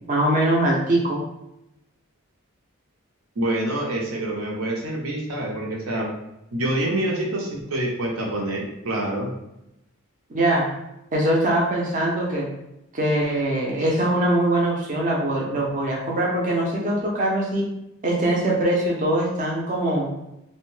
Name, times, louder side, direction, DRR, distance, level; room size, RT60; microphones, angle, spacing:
voice 1, 0.1-1.2 10.3-10.7 11.1-12.5 12.9-17.7 18.0-20.1, right 1 dB, 40° right, -3 dB, 0.5 m, -22 dB
voice 2, 3.4-6.1 6.5-9.3, right 1 dB, 80° right, -1 dB, 0.7 m, -26 dB
2.7 x 2.1 x 3.1 m, 0.87 s
head